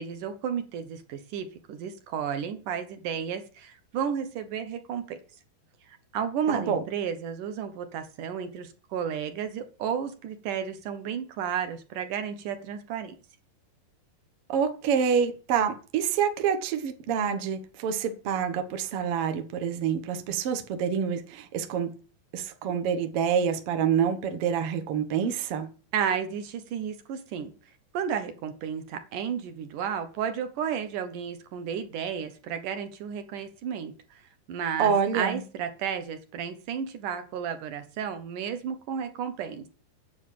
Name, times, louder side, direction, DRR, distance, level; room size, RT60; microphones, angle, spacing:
voice 1, 0.0-5.2 5.9-13.2 25.9-27.5 27.9-34.2 34.5-39.7, right 8 dB, 65° right, 2.3 m, -32 dB
voice 2, 6.5-6.8 14.5-21.9 22.3-25.7 34.8-35.4, right 7 dB, 80° right, 1.3 m, -27 dB
9.6 x 7.0 x 8.5 m
omnidirectional pair, 4.7 m